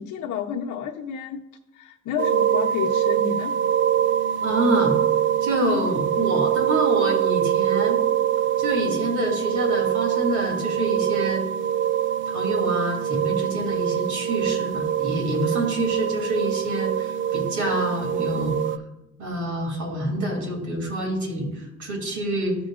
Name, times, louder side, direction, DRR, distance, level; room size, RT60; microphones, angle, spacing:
voice 1, 0.0-1.4 1.7-3.6, left 8 dB, 75° left, -2 dB, 0.8 m, -30 dB
sound 1, 2.2-18.8, right 10 dB, 40° right, 0.4 m, -24 dB
voice 2, 4.4-5.0 5.4-8.0 8.6-11.4 12.3-18.8 19.2-22.6, right 1 dB, 70° right, 0 dB, 2.9 m, -27 dB
14.0 x 5.2 x 2.5 m, 0.95 s
cardioid pair, 90°, 30 cm